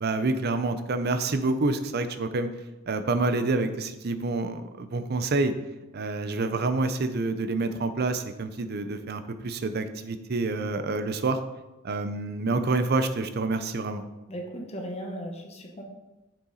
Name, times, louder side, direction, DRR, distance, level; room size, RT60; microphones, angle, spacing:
voice 1, 0.0-2.5 2.9-5.5 5.9-11.4 11.8-14.0, right 3 dB, 55° right, 10 dB, 0.6 m, -27 dB
voice 2, 14.3-15.8, equal, 30° left, 2 dB, 1.1 m, -37 dB
7.0 x 5.6 x 4.0 m, 1.0 s
head